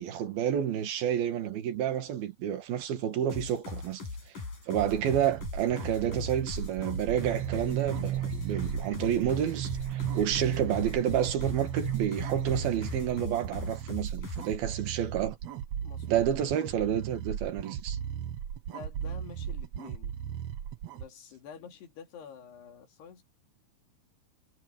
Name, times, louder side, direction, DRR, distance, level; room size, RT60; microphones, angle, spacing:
voice 1, 0.0-4.0 4.7-15.4 16.1-18.0, right 10 dB, 70° right, 3.6 m, -30 dB
sound 1, 3.3-14.5, left 4 dB, 55° left, 8.3 m, -40 dB
sound 2, 4.7-21.1, right 9 dB, 90° right, 1.4 m, -38 dB
sound 3, 7.2-13.3, right 9 dB, 50° right, 1.6 m, -35 dB
voice 2, 15.8-16.3 18.7-20.1 21.0-23.2, left 7 dB, 75° left, 5.0 m, -48 dB
omnidirectional pair, 4.7 m